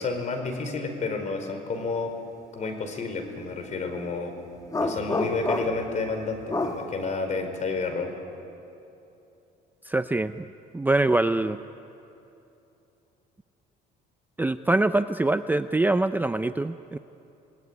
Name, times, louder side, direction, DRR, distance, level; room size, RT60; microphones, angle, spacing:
voice 1, 0.0-2.1 2.5-4.3 4.8-8.1, left 4 dB, 45° left, 6 dB, 4.5 m, -30 dB
sound 1, 4.7-5.9 6.5-6.8, left 2 dB, 20° left, 2.1 m, -27 dB
voice 2, 9.9-10.5 10.7-11.6 14.4-17.0, right 2 dB, 10° right, 10 dB, 0.6 m, -24 dB
28.0 x 20.0 x 9.6 m, 2.9 s
cardioid pair, 110°, 17 cm